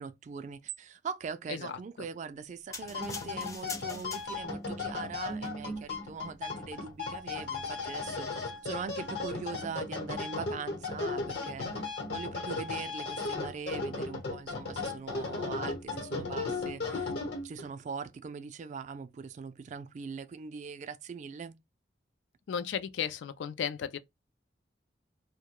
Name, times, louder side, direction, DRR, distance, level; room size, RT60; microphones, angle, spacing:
voice 1, 0.0-11.8 12.1-17.1 17.4-21.6, right 5 dB, 45° right, 0.3 m, -41 dB
voice 2, 1.5-2.1 22.5-24.0, left 7 dB, 85° left, 0.4 m, -35 dB
sound 1, 2.7-17.7, left 3 dB, 70° left, 0.9 m, -36 dB
sound 2, 2.7-4.7 5.3-5.5, left 3 dB, 20° left, 0.5 m, -43 dB
2.2 x 2.1 x 2.8 m
head